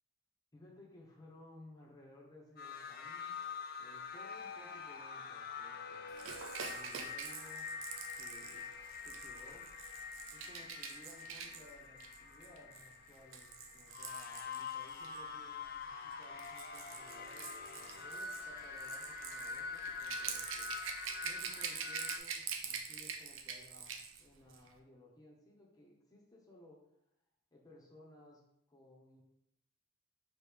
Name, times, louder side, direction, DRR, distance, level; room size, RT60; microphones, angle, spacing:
voice 1, 0.5-3.5 3.8-7.7 8.2-8.7 9.0-9.7 10.3-20.7 21.2-26.8 27.5-28.4 28.7-29.2, left 1 dB, 20° left, -4 dB, 0.9 m, -59 dB
sound 1, 2.6-22.2, left 5 dB, 50° left, 0.4 m, -45 dB
Rattle / Rattle (instrument), 6.2-15.2 16.1-24.2 24.5-24.7, right 6 dB, 75° right, 0.5 m, -45 dB
4.8 x 3.1 x 3.5 m, 0.76 s
head